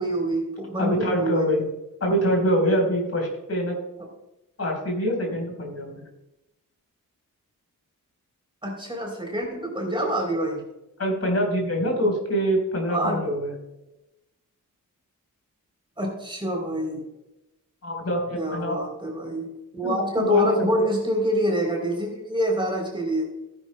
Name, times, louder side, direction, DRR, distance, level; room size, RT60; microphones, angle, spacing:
voice 1, 0.0-1.5 4.0-4.1 8.6-10.6 12.9-13.2 16.0-17.0 18.3-23.3, right 1 dB, 15° right, 0 dB, 3.4 m, -26 dB
voice 2, 0.8-1.6 2.0-3.8 4.6-6.0 11.0-13.5 17.8-18.8 19.8-20.7, equal, 45° left, 1 dB, 4.1 m, -24 dB
17.5 x 10.0 x 2.2 m, 0.91 s
wide cardioid pair, 170°, 33 cm